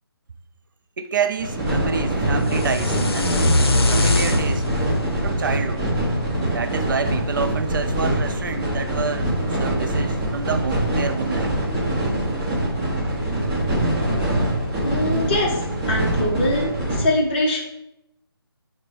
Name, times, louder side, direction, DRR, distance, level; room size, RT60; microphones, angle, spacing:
voice 1, 1.0-3.4 3.9-4.7 5.2-5.9 6.5-9.3 9.6-11.5, right 5 dB, 55° right, 8 dB, 0.4 m, -28 dB
sound 1, 1.4-17.0, right 1 dB, 15° right, 0.9 m, -24 dB
sound 2, 2.4-6.5, left 2 dB, 70° left, 0.6 m, -23 dB
voice 2, 14.8-15.6 15.9-16.7 17.0-17.6, left 1 dB, 25° left, -2 dB, 0.7 m, -22 dB
5.0 x 2.1 x 4.4 m, 0.88 s
figure-of-eight pair, 150°, 13 cm